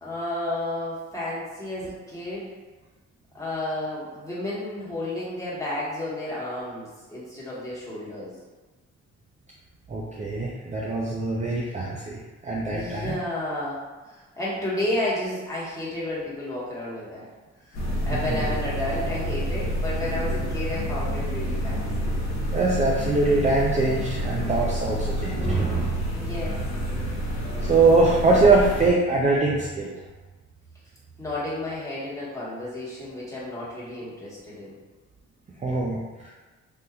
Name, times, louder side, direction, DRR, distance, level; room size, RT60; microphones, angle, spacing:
voice 1, 0.0-2.5 3.3-8.3 12.7-13.8 14.4-17.2 17.7-17.8 18.0-22.2 26.1-26.6 31.2-34.8, left 1 dB, 10° left, -8 dB, 1.2 m, -31 dB
voice 2, 9.9-13.1 22.5-26.1 27.6-29.9 35.6-36.3, right 3 dB, 25° right, -4 dB, 0.4 m, -23 dB
sound 1, 17.7-28.9, equal, 65° left, 0.9 m, -28 dB
3.5 x 2.7 x 2.2 m, 1.2 s
cardioid pair, 90°, 30 cm